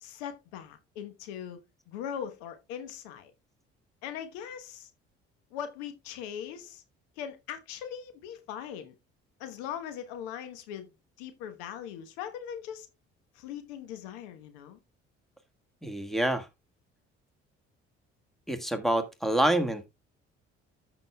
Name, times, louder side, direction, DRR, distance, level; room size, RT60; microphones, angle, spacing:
voice 1, 0.0-1.6 1.9-3.3 4.0-4.9 5.5-6.8 7.2-8.9 9.4-10.9 11.2-12.9 13.3-14.8, left 9 dB, 75° left, 1.2 m, -40 dB
voice 2, 15.8-16.5 18.5-19.9, right 1 dB, ahead, 1.7 m, -27 dB
14.0 x 6.0 x 2.3 m
hypercardioid pair, 50°, 32 cm